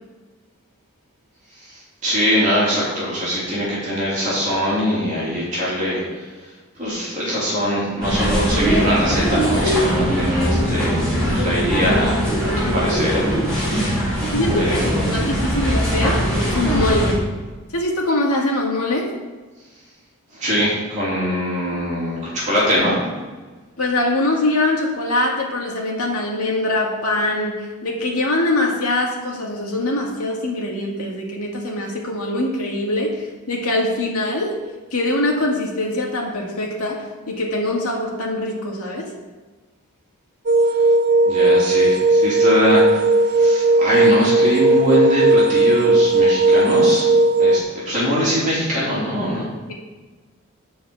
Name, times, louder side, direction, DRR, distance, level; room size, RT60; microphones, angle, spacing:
voice 1, 1.6-6.2 6.8-12.2 12.6-13.8 14.6-15.1 20.3-23.0 41.2-47.1 47.4-49.5, equal, 35° right, -8 dB, 3.1 m, -22 dB
sound 1, 8.0-17.1, equal, 5° left, 3.1 m, -20 dB
voice 2, 14.3-16.2 16.5-17.1 17.7-19.1 23.8-34.5 34.9-39.1, left 2 dB, 85° left, -1 dB, 2.1 m, -23 dB
sound 2, 40.5-47.6, right 2 dB, 50° right, 0.6 m, -16 dB
10.5 x 4.6 x 7.0 m, 1.3 s
head